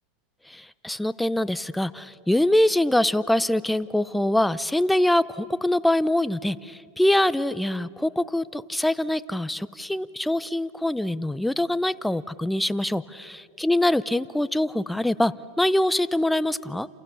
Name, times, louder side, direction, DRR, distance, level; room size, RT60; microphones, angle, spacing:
voice 1, 0.5-16.9, left 1 dB, 5° left, 16 dB, 0.6 m, -24 dB
29.5 x 28.0 x 6.9 m, 2.4 s
supercardioid pair, 125°, 0 cm